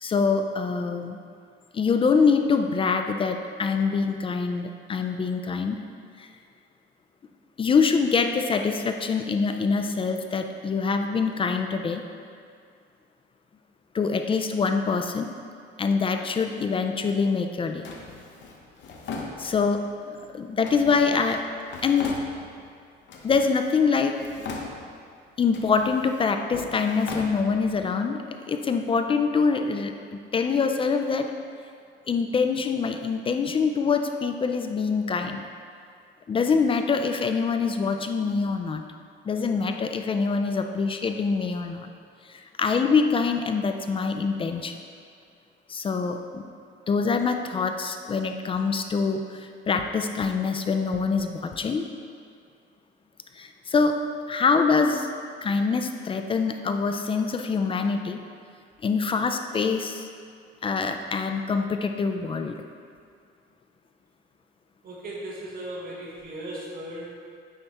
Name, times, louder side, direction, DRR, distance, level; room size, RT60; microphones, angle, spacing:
voice 1, 0.0-1.2 1.7-5.8 6.2-6.3 7.6-12.0 13.9-15.3 15.8-17.8 19.4-21.4 21.8-22.2 23.2-24.2 25.4-31.3 32.1-35.4 36.3-38.8 39.3-41.9 42.3-44.8 45.7-46.4 46.9-51.9 53.4-54.0 54.3-55.1 55.4-58.2 58.8-60.1 60.6-62.6, left 5 dB, 25° left, 6 dB, 0.3 m, -25 dB
Drawer open or close, 17.8-19.9 20.6-22.7 23.1-23.9 24.1-25.1 25.5-27.9, left 4 dB, 65° left, 0.8 m, -39 dB
voice 2, 64.8-67.0, right 1 dB, 45° right, -5 dB, 1.6 m, -37 dB
9.3 x 4.1 x 3.5 m, 2.3 s
cardioid pair, 130°, 21 cm